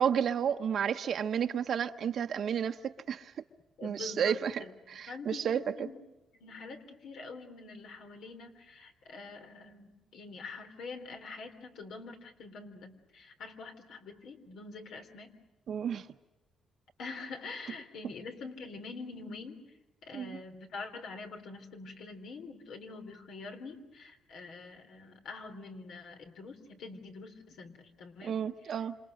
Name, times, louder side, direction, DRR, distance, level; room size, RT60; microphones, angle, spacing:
voice 1, 0.0-3.3 3.8-4.6 4.9-5.9 15.7-16.0 20.1-20.4 28.2-29.0, right 8 dB, 60° right, 1.0 m, -31 dB
voice 2, 3.8-6.0 6.4-15.3 17.0-19.8 20.0-28.7, left 4 dB, 75° left, 3.5 m, -45 dB
27.0 x 27.0 x 6.5 m
cardioid pair, 90°, 0 cm